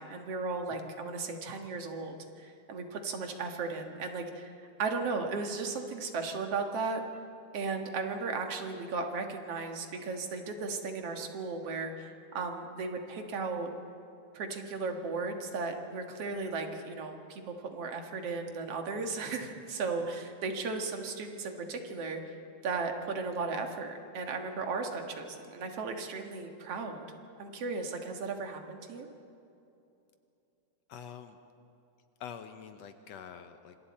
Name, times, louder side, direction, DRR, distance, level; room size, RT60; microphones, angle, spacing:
voice 1, 0.0-4.5 4.8-7.0 7.5-13.7 14.3-22.3 22.6-27.1 27.4-29.1, right 4 dB, 55° right, 4 dB, 2.5 m, -36 dB
voice 2, 30.9-31.4 32.2-33.8, left 7 dB, 70° left, 8 dB, 1.9 m, -46 dB
27.5 x 26.0 x 4.3 m, 2.8 s
omnidirectional pair, 3.4 m